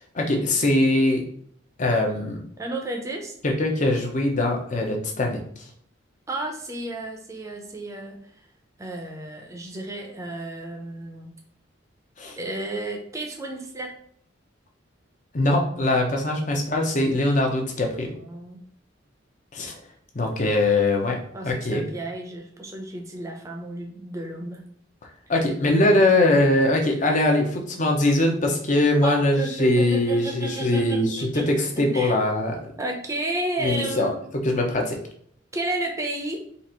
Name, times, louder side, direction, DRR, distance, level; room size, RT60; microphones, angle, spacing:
voice 1, 0.1-1.2 1.8-2.4 3.4-5.4 12.2-12.4 15.3-18.1 19.5-19.7 20.1-21.2 21.4-21.8 25.3-32.6 33.6-35.0, left 1 dB, 40° left, 1 dB, 0.8 m, -22 dB
voice 2, 2.6-3.3 6.3-8.3 8.8-11.3 12.4-13.9 18.1-18.6 21.3-24.6 29.0-31.5 31.8-32.2 32.8-34.2 35.5-36.4, right 1 dB, 15° right, 1 dB, 0.7 m, -32 dB
4.1 x 2.6 x 4.3 m, 0.64 s
head